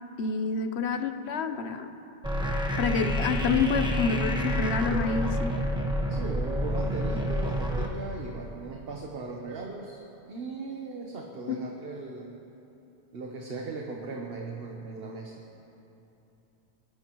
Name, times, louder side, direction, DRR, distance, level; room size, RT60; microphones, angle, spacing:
voice 1, 0.2-1.9 2.8-5.5 11.5-11.6, left 5 dB, 80° left, 8 dB, 1.1 m, -28 dB
sound 1, 2.2-7.9, equal, 5° right, 1.2 m, -28 dB
voice 2, 3.3-3.8 6.1-10.0 10.3-12.3 13.1-15.4, right 3 dB, 65° right, 0 dB, 1.3 m, -38 dB
29.5 x 12.0 x 3.1 m, 3.0 s
omnidirectional pair, 1.1 m